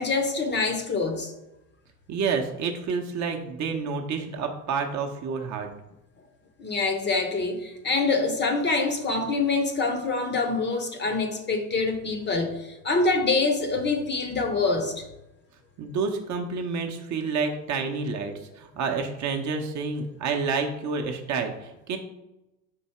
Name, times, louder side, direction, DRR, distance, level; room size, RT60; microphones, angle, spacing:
voice 1, 0.0-1.3 6.6-15.1, left 3 dB, 25° left, 5 dB, 0.7 m, -25 dB
voice 2, 2.1-5.7 15.8-22.0, right 5 dB, 40° right, 3 dB, 0.7 m, -29 dB
4.6 x 2.7 x 4.2 m, 0.95 s
hypercardioid pair, 90°, 45 cm